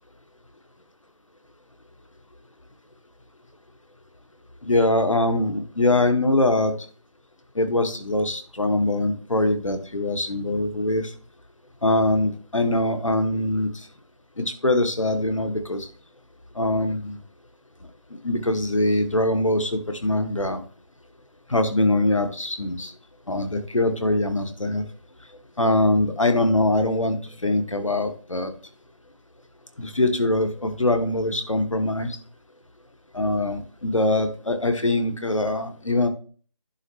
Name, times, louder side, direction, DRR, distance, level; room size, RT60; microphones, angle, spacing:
voice 1, 4.6-6.7 7.6-11.1 11.8-13.7 14.4-15.9 16.6-17.2 18.2-20.6 21.5-22.9 23.3-24.8 25.6-27.2 27.4-28.5 29.8-32.2 33.1-36.1, left 2 dB, 80° left, 7 dB, 1.8 m, -23 dB
11.0 x 6.2 x 2.7 m, 0.41 s
figure-of-eight pair, 165°, 16 cm